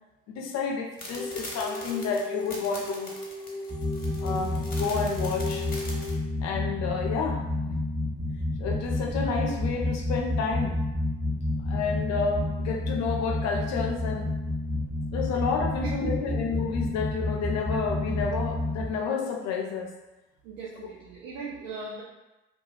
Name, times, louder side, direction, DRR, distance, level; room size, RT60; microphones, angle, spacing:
voice 1, 0.3-3.2 4.2-5.7 6.4-7.8 8.6-10.8 11.7-14.4 15.1-19.9, left 5 dB, 60° left, 1 dB, 0.6 m, -30 dB
sound 1, 1.0-6.1, left 1 dB, 30° left, 1.0 m, -41 dB
sound 2, 1.2-6.2, left 2 dB, 15° left, 0.3 m, -37 dB
sound 3, 3.7-18.9, left 2 dB, 10° right, 0.7 m, -30 dB
voice 2, 15.7-16.4 16.7-16.8 20.4-22.0, right 5 dB, 75° right, -5 dB, 0.5 m, -38 dB
2.4 x 2.3 x 3.2 m, 1.0 s
hypercardioid pair, 40°, 29 cm